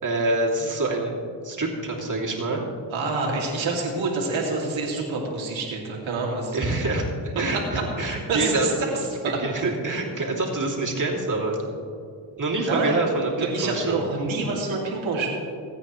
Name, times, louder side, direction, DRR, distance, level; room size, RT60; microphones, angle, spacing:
voice 1, 0.0-2.6 6.5-8.9 9.2-11.6 12.4-14.0, right 2 dB, 40° right, -3 dB, 2.7 m, -26 dB
voice 2, 2.9-6.6 8.0-8.7 9.2-9.4 12.7-13.0 13.4-15.3, right 3 dB, 90° right, -2 dB, 2.6 m, -27 dB
20.0 x 8.9 x 3.1 m, 2.5 s
cardioid pair, 60°, 45 cm